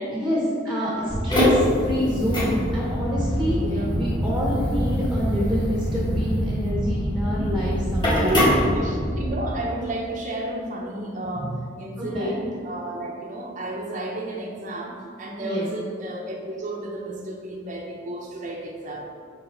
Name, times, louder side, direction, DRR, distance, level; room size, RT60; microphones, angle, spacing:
voice 1, 0.1-8.7 12.0-12.3 15.4-15.6, left 1 dB, ahead, -5 dB, 1.0 m, -27 dB
voice 2, 0.6-1.1 3.5-3.9 7.2-7.6 8.2-8.5 8.7-19.1, right 1 dB, 40° right, -2 dB, 0.7 m, -32 dB
sound 1, 1.1-9.4, equal, 25° left, 1.4 m, -24 dB
5.6 x 4.9 x 4.3 m, 2.3 s
head